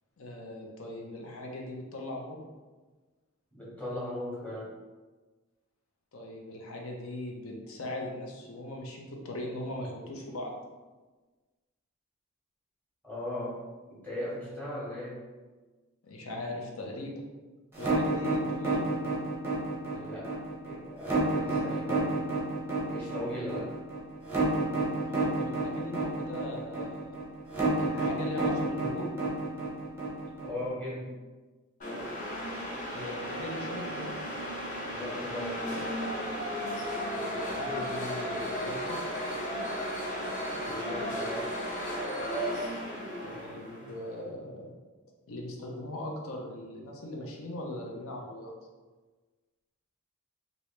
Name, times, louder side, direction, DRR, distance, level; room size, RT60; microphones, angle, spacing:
voice 1, 0.2-2.4 6.1-10.5 16.0-17.2 17.8-18.8 25.0-27.1 27.7-29.1 32.8-34.1 37.1-39.0 43.2-44.7 45.3-48.5, left 1 dB, 75° left, 0 dB, 0.6 m, -39 dB
voice 2, 3.5-4.7 13.0-13.6 13.9-15.2 19.9-20.4 20.6-22.1 22.8-23.7 30.4-31.1 34.8-35.6 40.5-41.5, left 1 dB, 10° left, -8 dB, 1.0 m, -38 dB
sound 1, 17.7-30.7, right 2 dB, 10° right, 0.6 m, -30 dB
sound 2, 31.8-44.1, equal, 35° left, 0.7 m, -35 dB
3.0 x 2.7 x 3.1 m, 1.3 s
head